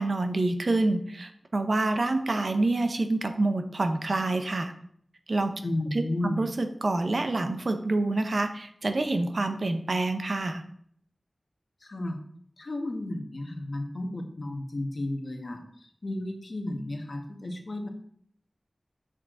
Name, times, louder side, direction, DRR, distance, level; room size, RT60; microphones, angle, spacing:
voice 1, 0.0-4.7 5.3-5.6 5.9-10.6, right 2 dB, 70° right, 7 dB, 1.0 m, -27 dB
voice 2, 5.6-6.5 11.8-12.2 12.6-17.9, left 1 dB, 65° left, 4 dB, 1.4 m, -33 dB
8.4 x 6.5 x 3.8 m, 0.63 s
wide cardioid pair, 70°, 0 cm